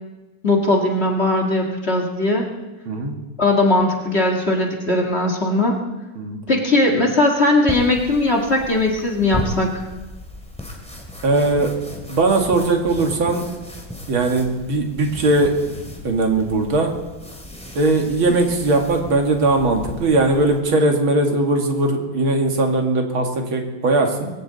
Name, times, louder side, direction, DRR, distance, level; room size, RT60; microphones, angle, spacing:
voice 1, 0.4-2.5 3.4-5.8 6.5-9.9, left 2 dB, 30° left, 0 dB, 2.0 m, -19 dB
sound 1, 7.7-20.6, left 1 dB, 5° left, 2.4 m, -35 dB
voice 2, 11.2-11.7 12.1-13.4 14.1-15.5 16.0-16.9 17.8-24.3, right 2 dB, 70° right, 2 dB, 2.8 m, -19 dB
22.0 x 16.0 x 4.1 m, 1.1 s
omnidirectional pair, 2.3 m